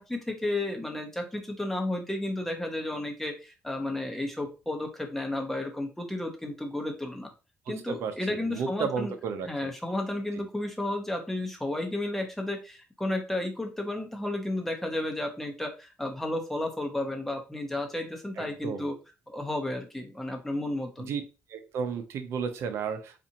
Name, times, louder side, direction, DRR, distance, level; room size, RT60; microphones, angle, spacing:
voice 1, 0.0-7.3 7.7-9.1 9.4-19.0 19.3-21.1, left 1 dB, 5° left, 0.9 m, -32 dB
voice 2, 7.7-9.5 18.4-18.9 21.1-21.2 21.5-23.2, right 6 dB, 70° right, 0.7 m, -33 dB
4.1 x 2.5 x 2.8 m
cardioid pair, 125°, 5 cm